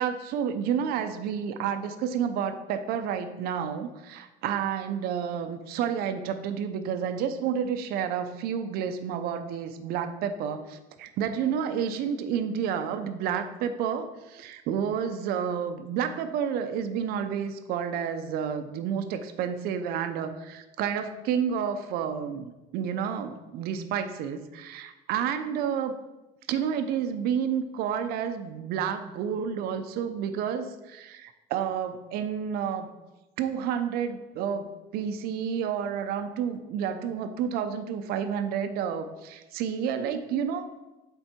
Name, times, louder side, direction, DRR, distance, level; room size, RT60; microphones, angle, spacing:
voice 1, 0.0-26.0 26.5-32.9 33.4-40.7, right 8 dB, 70° right, 8 dB, 0.7 m, -30 dB
8.1 x 3.9 x 4.4 m, 1.1 s
cardioid pair, 150°, 16 cm